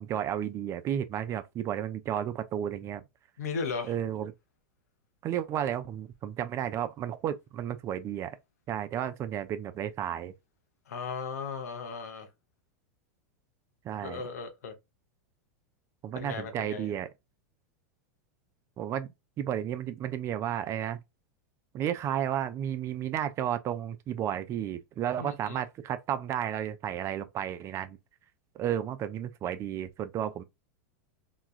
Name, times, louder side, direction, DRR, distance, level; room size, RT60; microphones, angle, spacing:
voice 1, 0.0-3.0 3.8-4.3 5.2-8.4 8.7-10.3 13.8-14.2 16.0-17.1 18.8-19.1 19.4-21.0 21.7-28.0 28.6-30.4, right 10 dB, 35° right, 0.4 m, -32 dB
voice 2, 3.4-3.9 10.9-12.3 14.0-14.7 16.1-16.9 25.2-25.6, left 5 dB, 85° left, 0.8 m, -36 dB
3.0 x 2.3 x 2.4 m
hypercardioid pair, 115°, 8 cm